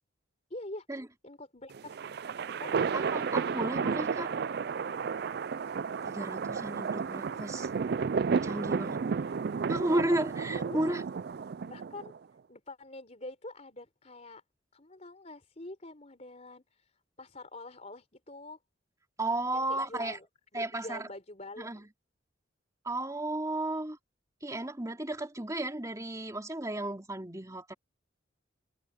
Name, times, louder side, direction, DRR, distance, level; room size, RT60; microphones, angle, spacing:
voice 1, 0.5-0.9 1.2-2.0 2.6-2.9 6.8-6.9 9.8-9.9 10.6-10.8 11.6-12.1 12.5-14.4 14.7-18.6 19.5-20.3 20.6-21.7, left 2 dB, 35° left, 3.9 m, -45 dB
sound 1, 1.7-12.2, right 5 dB, 55° right, 0.4 m, -32 dB
voice 2, 2.9-4.3 6.0-7.7 8.4-9.0 9.7-11.0 19.2-20.2 20.5-21.1 21.6-21.8 22.8-24.0 24.4-27.7, right 1 dB, 15° right, 2.7 m, -33 dB
head